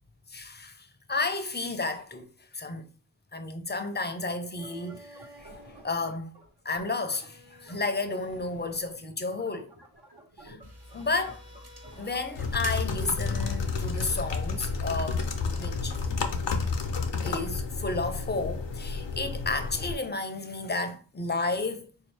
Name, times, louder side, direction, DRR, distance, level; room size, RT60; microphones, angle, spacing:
voice 1, 0.3-2.2 2.5-2.9 3.3-6.3 6.6-9.7 10.4-10.6 10.9-11.4 12.0-16.1 17.2-21.9, left 3 dB, 25° left, 0.5 m, -32 dB
sound 1, 4.6-15.0, equal, 70° right, 1.2 m, -51 dB
sound 2, 10.6-16.1, right 1 dB, 35° right, 1.0 m, -47 dB
sound 3, 12.4-19.9, left 4 dB, 85° left, 0.7 m, -31 dB
3.8 x 2.7 x 3.3 m
wide cardioid pair, 55°, 42 cm